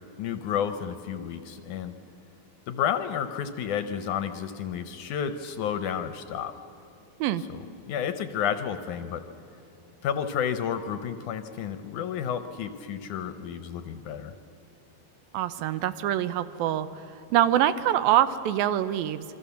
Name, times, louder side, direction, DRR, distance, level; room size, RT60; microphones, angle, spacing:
voice 1, 0.2-2.0 2.7-6.5 7.5-9.2 10.0-14.3, left 8 dB, 70° left, 9 dB, 2.0 m, -31 dB
voice 2, 15.3-16.9 17.3-19.2, right 11 dB, 80° right, 13 dB, 2.5 m, -24 dB
27.5 x 23.5 x 7.0 m, 2.8 s
omnidirectional pair, 4.3 m